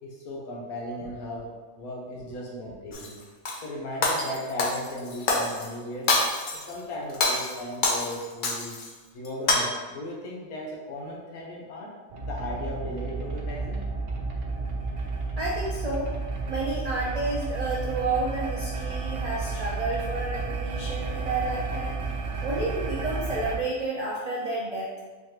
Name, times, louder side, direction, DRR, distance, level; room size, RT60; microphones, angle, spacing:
voice 1, 0.0-3.2 3.6-6.1 6.6-8.8 9.1-11.9 12.2-13.8, left 1 dB, 85° left, -2 dB, 1.3 m, -36 dB
Shatter, 2.9-3.6 4.0-5.7 6.1-6.7 7.1-8.9 9.2-9.6, left 2 dB, 60° left, 0.5 m, -26 dB
sound 1, 12.1-23.6, right 4 dB, 60° right, 0.7 m, -32 dB
voice 2, 15.4-16.1 16.5-22.0 22.4-24.9, right 2 dB, 85° right, -4 dB, 0.3 m, -30 dB
4.1 x 3.2 x 2.9 m, 1.3 s
omnidirectional pair, 1.5 m